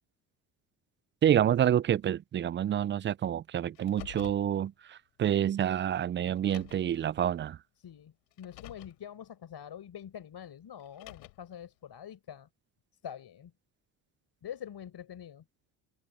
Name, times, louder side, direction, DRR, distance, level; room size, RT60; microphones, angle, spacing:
voice 1, 1.2-7.6, right 10 dB, 25° right, 0.3 m, -28 dB
Car, 3.7-4.5 5.6-5.7 6.4-7.0 8.3-9.0 10.8-11.5, left 29 dB, 85° left, 4.0 m, -48 dB
voice 2, 7.8-12.5 13.0-13.5 14.4-15.5, left 9 dB, 50° left, 4.9 m, -45 dB
hypercardioid pair, 60°, 50 cm